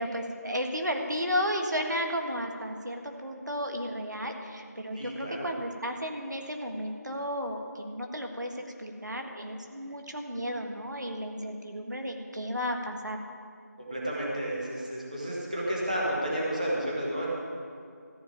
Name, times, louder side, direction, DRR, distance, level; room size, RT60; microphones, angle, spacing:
voice 1, 0.0-8.5 8.8-13.2, equal, 90° right, 3 dB, 1.6 m, -33 dB
voice 2, 5.0-5.5 13.8-17.3, right 1 dB, 25° right, -5 dB, 1.6 m, -31 dB
14.0 x 4.8 x 9.0 m, 2.2 s
figure-of-eight pair, 180°, 9 cm